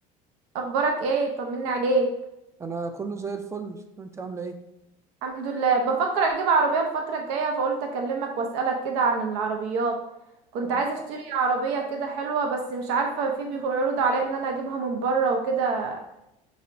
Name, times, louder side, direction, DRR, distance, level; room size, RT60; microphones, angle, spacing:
voice 1, 0.5-2.1 5.2-10.0 10.5-16.0, right 4 dB, 80° right, 3 dB, 0.5 m, -25 dB
voice 2, 2.6-4.6 10.6-10.9, right 4 dB, 20° right, 7 dB, 0.4 m, -34 dB
5.2 x 2.0 x 2.5 m, 0.88 s
supercardioid pair, 105°, 16 cm